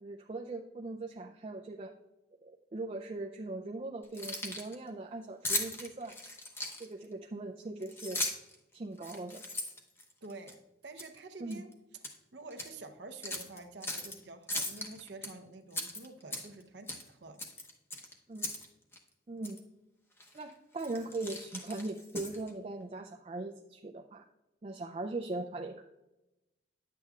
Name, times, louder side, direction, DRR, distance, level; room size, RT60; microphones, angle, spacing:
voice 1, 0.0-1.9 2.4-6.2 6.8-8.2 8.7-9.4 11.4-11.6 18.3-18.5 19.3-19.6 20.3-24.2 24.6-25.8, right 2 dB, 35° right, 3 dB, 0.4 m, -40 dB
Keys jangling, 4.0-4.7 5.4-7.0 7.8-8.5 9.0-10.5 11.0-11.2 11.5-12.2 12.5-12.7 13.2-14.1 14.5-15.3 15.7-16.6 16.9-17.1 17.4-18.7 18.9-19.0 19.4-19.6 20.2-20.4 20.8-22.5, left 1 dB, 15° left, 0.8 m, -38 dB
voice 2, 10.2-11.7 12.3-17.4, right 3 dB, 75° right, 7 dB, 0.7 m, -48 dB
10.0 x 8.2 x 2.4 m, 0.98 s
head